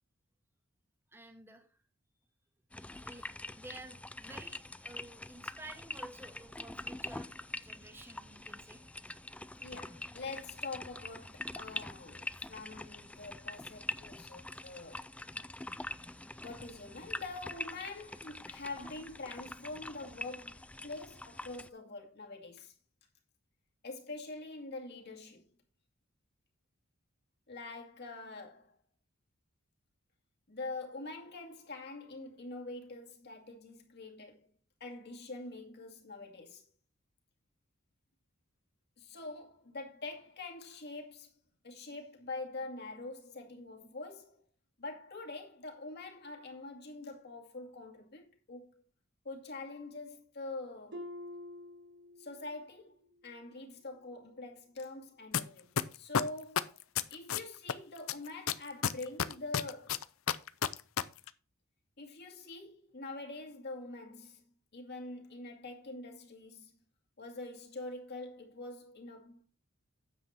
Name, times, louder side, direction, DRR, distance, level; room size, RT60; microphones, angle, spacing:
voice 1, 1.1-1.7 3.0-8.8 15.8-15.9, right 2 dB, 10° right, 1.6 m, -52 dB
sound 1, 2.7-21.7, left 2 dB, 5° left, 0.4 m, -44 dB
voice 2, 9.6-15.0 16.4-22.7 23.8-25.4 27.5-28.8 30.5-34.5 34.8-36.7 39.0-41.3 41.6-44.4 44.8-48.7 49.2-51.0 52.2-56.8 57.1-60.0 62.0-64.4 64.7-66.7 67.2-69.4, left 3 dB, 55° left, 2.3 m, -45 dB
Harp, 50.9-52.7 53.0-53.4 54.0-54.1, left 1 dB, 60° right, 1.8 m, -47 dB
sound 2, 55.3-55.4 55.8-57.7 58.1-61.0 61.3-61.4, left 8 dB, 85° left, 0.6 m, -30 dB
9.5 x 7.5 x 4.2 m
head